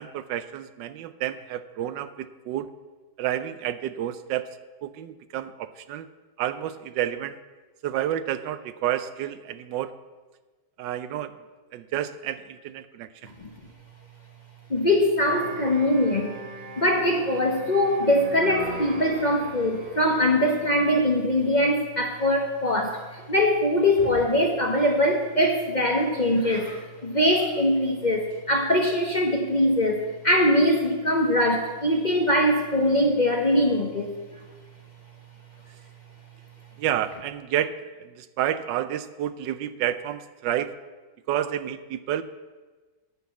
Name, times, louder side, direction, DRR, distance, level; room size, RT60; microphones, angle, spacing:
voice 1, 0.0-2.7 3.2-6.1 6.4-7.4 7.8-9.9 10.8-11.3 11.7-13.3 36.8-40.8 41.3-42.2, right 11 dB, 85° right, 13 dB, 1.3 m, -30 dB
voice 2, 14.7-16.3 16.8-34.1, left 1 dB, 35° left, 1 dB, 0.8 m, -22 dB
sound 1, 15.2-21.1, right 1 dB, 30° right, 1.8 m, -40 dB
9.5 x 6.0 x 8.3 m, 1.3 s
omnidirectional pair, 1.9 m